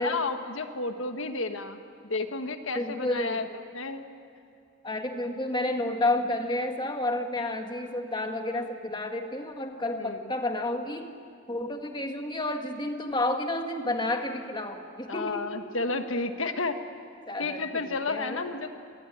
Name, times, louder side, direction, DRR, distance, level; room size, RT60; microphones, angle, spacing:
voice 1, 0.0-3.4 3.7-4.1 10.0-10.2 15.1-16.8 17.4-18.7, left 3 dB, 75° left, 7 dB, 1.4 m, -31 dB
voice 2, 2.7-3.5 4.8-11.1 11.5-15.5 17.3-18.5, left 1 dB, 20° left, 4 dB, 1.6 m, -30 dB
27.0 x 21.5 x 10.0 m, 2.6 s
head